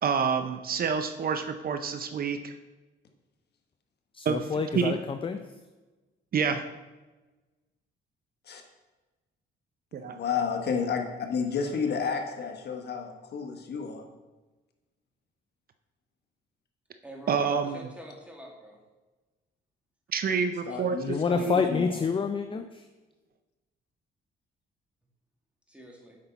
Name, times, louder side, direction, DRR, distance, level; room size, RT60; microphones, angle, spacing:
voice 1, 0.0-2.5 4.2-4.5 4.7-5.0 6.3-6.7 9.9-10.2 17.3-17.9 20.1-21.6, right 6 dB, 50° right, 9 dB, 0.6 m, -28 dB
voice 2, 4.1-5.4 21.0-22.9, left 5 dB, 25° left, 7 dB, 0.5 m, -28 dB
voice 3, 10.0-14.0 20.7-22.0, left 6 dB, 55° left, 4 dB, 1.3 m, -31 dB
voice 4, 17.0-18.8 20.7-20.8 25.7-26.1, equal, 5° right, -1 dB, 2.1 m, -46 dB
8.5 x 5.6 x 4.0 m, 1.2 s
cardioid pair, 90°, 20 cm